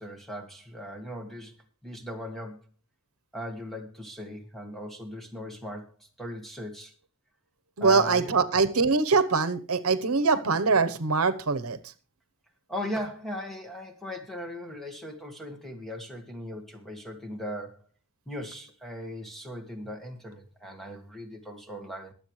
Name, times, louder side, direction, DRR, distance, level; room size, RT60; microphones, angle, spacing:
voice 1, 0.0-1.5 1.8-2.6 3.3-6.9 7.8-8.5 12.7-17.8 18.3-22.1, equal, ahead, 3 dB, 1.8 m, -38 dB
voice 2, 7.8-11.8, right 4 dB, 75° right, 12 dB, 1.0 m, -23 dB
22.5 x 7.7 x 3.2 m, 0.36 s
head